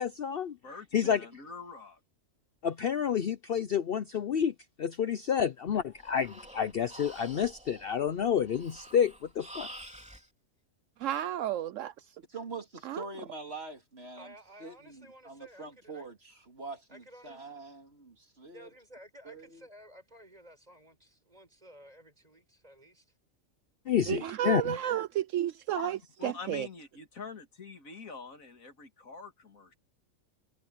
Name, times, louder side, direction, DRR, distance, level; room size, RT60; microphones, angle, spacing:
voice 1, 0.0-0.6 0.9-1.3 2.6-4.5 4.8-9.7 23.9-24.8, left 8 dB, 55° left, 0.8 m, -29 dB
voice 2, 0.6-2.0 26.2-29.8, left 5 dB, 85° left, 2.7 m, -45 dB
Breathing, 5.7-10.3, equal, 5° right, 3.2 m, -49 dB
voice 3, 11.0-11.9 12.8-13.0 24.1-26.7, right 12 dB, 75° right, 0.9 m, -32 dB
voice 4, 12.3-14.3 14.6-18.7 19.2-19.6, right 3 dB, 50° right, 3.1 m, -44 dB
voice 5, 14.2-16.1 16.9-17.5 18.5-23.1, equal, 30° right, 8.0 m, -54 dB
omnidirectional pair, 1.4 m